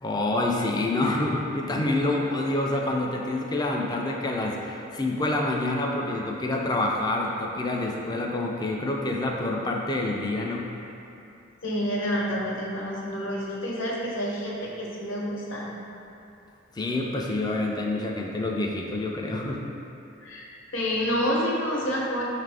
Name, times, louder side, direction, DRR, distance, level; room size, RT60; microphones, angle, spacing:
voice 1, 0.0-10.7 16.7-19.6, left 2 dB, 20° left, 0 dB, 0.3 m, -27 dB
voice 2, 11.6-15.7 20.2-20.4 20.7-22.2, equal, 65° left, -4 dB, 0.8 m, -28 dB
5.7 x 2.5 x 3.3 m, 2.8 s
head